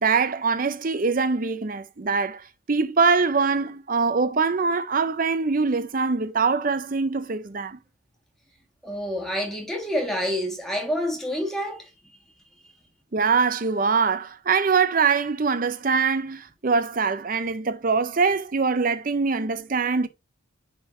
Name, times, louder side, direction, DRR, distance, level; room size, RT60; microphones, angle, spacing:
voice 1, 0.0-7.8 13.1-20.1, right 5 dB, 40° right, 0.6 m, -23 dB
voice 2, 8.8-11.9, equal, ahead, 1.7 m, -28 dB
9.8 x 3.9 x 2.6 m
head